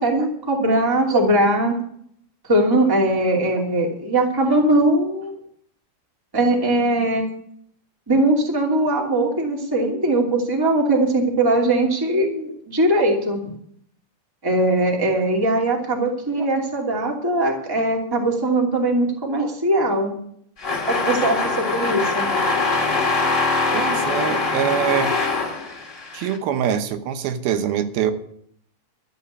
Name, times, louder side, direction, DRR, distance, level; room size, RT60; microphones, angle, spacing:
voice 1, 0.0-1.8 2.5-5.4 6.3-7.2 8.1-13.4 14.4-20.1 20.9-22.3, right 1 dB, 5° right, 0 dB, 2.0 m, -20 dB
sound 1, 20.6-26.4, left 3 dB, 30° left, 1.6 m, -23 dB
voice 2, 23.7-25.1 26.1-28.1, right 9 dB, 80° right, 8 dB, 2.8 m, -24 dB
12.5 x 7.9 x 8.4 m, 0.66 s
omnidirectional pair, 4.4 m